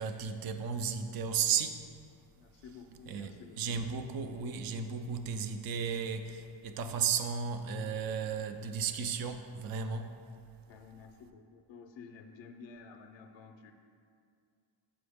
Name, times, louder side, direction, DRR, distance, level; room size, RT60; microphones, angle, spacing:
voice 1, 0.0-1.8 3.1-10.1, right 6 dB, 50° right, 8 dB, 0.5 m, -34 dB
voice 2, 2.4-3.8 10.7-13.7, left 5 dB, 75° left, 5 dB, 0.5 m, -52 dB
8.5 x 5.0 x 3.5 m, 2.3 s
cardioid pair, 150°, 46 cm